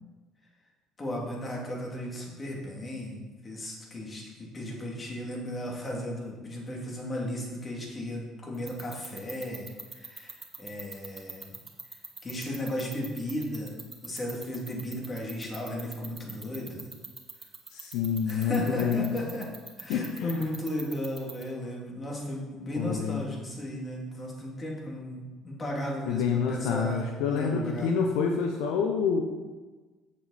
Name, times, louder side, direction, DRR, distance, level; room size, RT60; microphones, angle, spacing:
voice 1, 1.0-11.6 12.2-13.8 14.0-16.9 18.3-19.5 19.8-27.9, left 1 dB, 30° left, -2 dB, 2.7 m, -35 dB
sound 1, 8.5-21.4, right 4 dB, 30° right, 1.5 m, -40 dB
voice 2, 17.7-19.1 19.9-20.5 22.8-23.2 26.1-29.2, left 6 dB, 75° left, 2 dB, 0.7 m, -28 dB
7.6 x 7.5 x 4.2 m, 1.3 s
hypercardioid pair, 65°, 0 cm